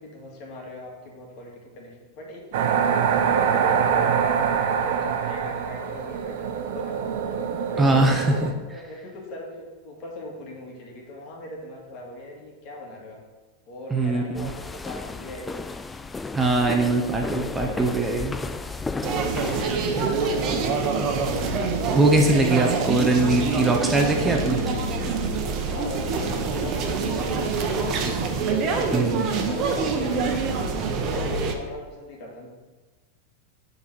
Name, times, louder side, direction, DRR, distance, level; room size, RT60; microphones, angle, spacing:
voice 1, 0.0-7.0 7.3-13.2 13.7-15.7 16.6-18.6 19.7-21.1 25.6-28.2 28.6-32.5, left 1 dB, 50° left, -1 dB, 2.2 m, -40 dB
sound 1, 2.5-8.5, right 7 dB, 65° right, 0.8 m, -24 dB
voice 2, 7.8-8.5 13.9-14.5 16.3-18.3 19.9-20.1 21.9-24.6 28.9-29.2, right 2 dB, 10° right, 1 dB, 0.8 m, -22 dB
sound 2, 14.3-19.7, left 3 dB, 10° left, 0.3 m, -34 dB
sound 3, 19.0-31.5, right 4 dB, 40° right, 1.0 m, -25 dB
7.0 x 4.0 x 6.1 m, 1.3 s
hypercardioid pair, 125°, 0 cm